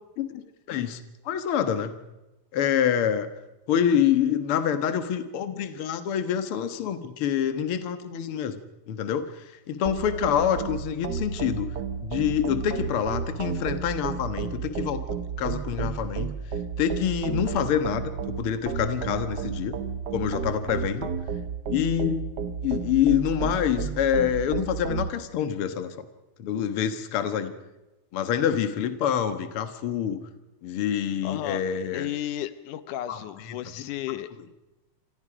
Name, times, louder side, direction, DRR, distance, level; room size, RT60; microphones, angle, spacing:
voice 1, 0.7-1.0 1.3-1.9 2.5-3.3 3.7-8.6 8.9-9.3 9.7-11.7 12.0-15.1 15.4-16.3 16.8-19.8 20.1-21.1 21.7-22.2 22.6-25.9 26.4-27.5 28.1-30.2 30.6-32.1 33.1-33.2, left 9 dB, 55° left, 9 dB, 2.1 m, -26 dB
sound 1, 9.9-25.1, right 6 dB, 70° right, 0.9 m, -32 dB
voice 2, 31.2-31.7 31.9-34.3, left 12 dB, 90° left, 13 dB, 2.5 m, -33 dB
28.5 x 25.5 x 5.0 m, 1.0 s
omnidirectional pair, 3.5 m